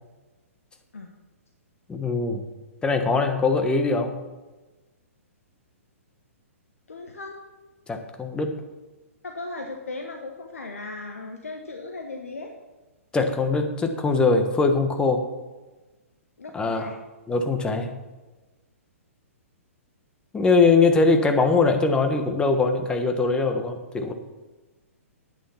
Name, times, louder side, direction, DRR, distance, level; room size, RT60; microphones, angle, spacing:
voice 1, 1.9-2.4 2.8-4.1 7.9-8.6 13.1-15.3 16.5-16.9 17.3-17.9 20.3-24.1, left 3 dB, 10° left, 6 dB, 1.2 m, -22 dB
voice 2, 6.9-7.4 9.2-12.5 16.4-17.0, left 3 dB, 75° left, 4 dB, 1.2 m, -37 dB
9.2 x 9.0 x 5.8 m, 1.2 s
figure-of-eight pair, 115°, 8 cm